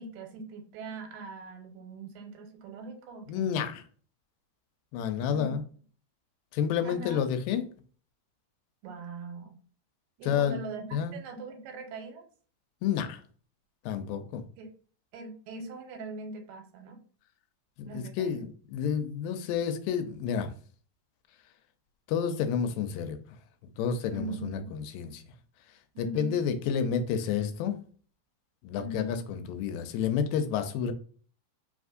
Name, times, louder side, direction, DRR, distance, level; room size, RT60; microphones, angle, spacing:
voice 1, 0.0-3.5 5.2-5.5 6.8-7.2 8.8-9.6 10.2-12.3 14.6-14.7 15.1-17.0 17.8-18.5 24.1-24.7 25.9-26.4 28.8-29.2, right 2 dB, 90° right, 2.5 m, -41 dB
voice 2, 3.3-3.8 4.9-5.6 6.5-7.7 10.2-10.6 10.9-11.2 12.8-13.2 13.9-14.4 17.8-20.5 22.1-23.2 23.8-25.2 26.0-27.8 28.6-30.9, left 7 dB, 85° left, 2.2 m, -30 dB
4.8 x 3.5 x 2.5 m
omnidirectional pair, 3.9 m